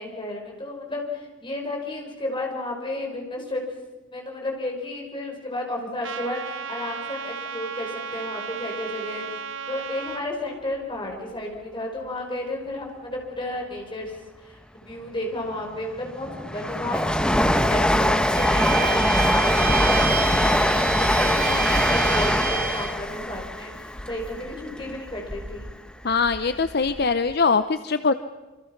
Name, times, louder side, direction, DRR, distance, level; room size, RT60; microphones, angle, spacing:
voice 1, 0.0-3.6 4.1-9.3 9.7-25.7, left 1 dB, 25° left, 1 dB, 5.5 m, -33 dB
Trumpet, 6.0-10.2, right 6 dB, 70° right, 1.2 m, -34 dB
Train, 15.5-25.7 26.1-27.0 27.3-27.4, left 1 dB, 5° left, 1.1 m, -23 dB
Bowed string instrument, 18.3-23.0, right 8 dB, 45° right, 1.6 m, -29 dB
voice 2, 26.0-28.1, left 4 dB, 50° left, 11 dB, 0.7 m, -22 dB
27.5 x 25.5 x 5.9 m, 1.2 s
head